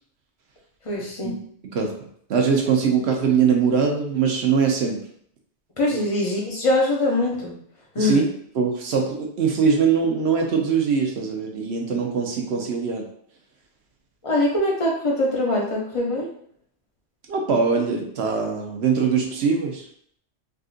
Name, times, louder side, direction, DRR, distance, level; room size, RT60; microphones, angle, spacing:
voice 1, 0.8-1.4 5.8-7.6 7.9-8.2 14.2-16.3, left 1 dB, 30° left, -2 dB, 0.7 m, -23 dB
voice 2, 2.3-5.0 5.9-6.0 8.0-8.2 8.6-13.1 17.3-19.8, right 6 dB, 65° right, 1 dB, 0.9 m, -22 dB
3.6 x 2.4 x 2.4 m, 0.63 s
omnidirectional pair, 1.2 m